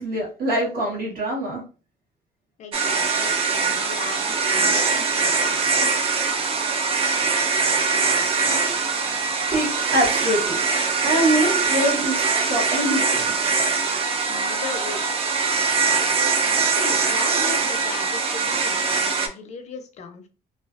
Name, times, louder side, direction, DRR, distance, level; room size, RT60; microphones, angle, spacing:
voice 1, 0.0-1.6 9.0-10.6 11.0-12.2 12.5-13.3, right 1 dB, 60° right, -3 dB, 1.1 m, -24 dB
voice 2, 2.6-5.9 14.3-15.2 15.8-16.1 16.7-20.3, left 5 dB, 45° left, 6 dB, 0.4 m, -37 dB
sound 1, 2.7-19.3, right 4 dB, 35° right, 0.4 m, -22 dB
2.4 x 2.3 x 2.4 m, 0.35 s
cardioid pair, 160°, 17 cm